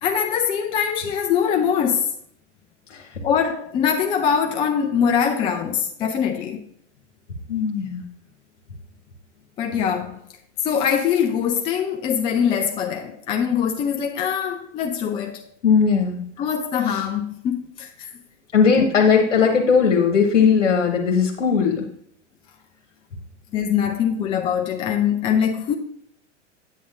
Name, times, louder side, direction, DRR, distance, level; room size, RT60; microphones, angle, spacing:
voice 1, 0.0-2.1 3.2-6.6 9.6-10.2 10.6-15.4 16.4-18.1 23.5-25.7, left 8 dB, 15° left, 0.3 m, -23 dB
voice 2, 2.9-3.2 7.5-8.0 15.6-16.2 16.9-17.0 18.5-21.9, left 6 dB, 70° left, 1.1 m, -18 dB
8.3 x 8.1 x 2.5 m
figure-of-eight pair, 95°, 36 cm